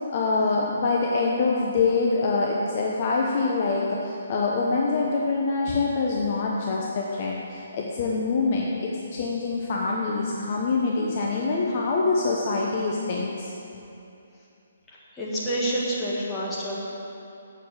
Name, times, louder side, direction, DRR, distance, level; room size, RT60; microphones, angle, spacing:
voice 1, 0.1-13.5, left 3 dB, 30° left, -2 dB, 0.8 m, -25 dB
voice 2, 14.9-16.8, right 1 dB, 10° left, -8 dB, 1.6 m, -28 dB
8.3 x 7.1 x 8.0 m, 2.8 s
hypercardioid pair, 175°, 0 cm